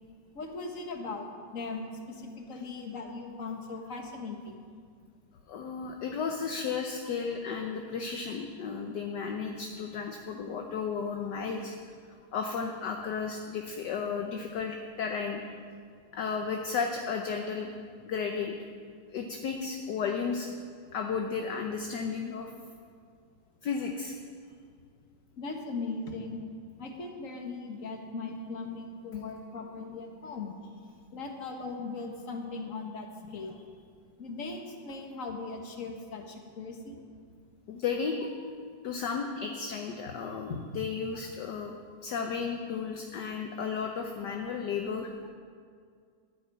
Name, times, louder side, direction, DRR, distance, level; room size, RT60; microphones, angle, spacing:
voice 1, 0.4-1.3 1.5-4.5 7.5-7.6 25.4-26.4 26.8-30.6 31.1-33.1 33.3-33.6 34.2-37.0 40.5-40.7, left 3 dB, 45° left, 3 dB, 1.8 m, -38 dB
voice 2, 5.5-11.8 12.3-15.4 16.1-17.7 18.0-18.5 19.1-20.5 20.9-22.5 23.6-24.1 37.7-38.3 38.8-41.7 42.0-45.1, left 5 dB, 65° left, 3 dB, 1.4 m, -33 dB
12.5 x 8.4 x 9.2 m, 2.1 s
omnidirectional pair, 2.1 m